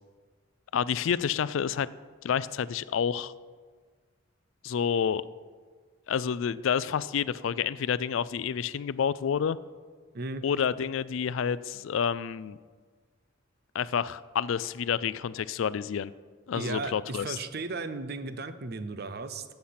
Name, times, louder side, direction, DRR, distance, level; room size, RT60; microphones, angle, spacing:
voice 1, 0.7-1.9 2.2-3.3 4.6-5.2 6.1-9.6 10.4-12.6 13.7-16.1 16.5-17.4, left 7 dB, 70° left, 17 dB, 0.4 m, -29 dB
voice 2, 16.5-19.4, right 3 dB, 50° right, 11 dB, 0.6 m, -35 dB
15.0 x 5.8 x 5.8 m, 1.6 s
head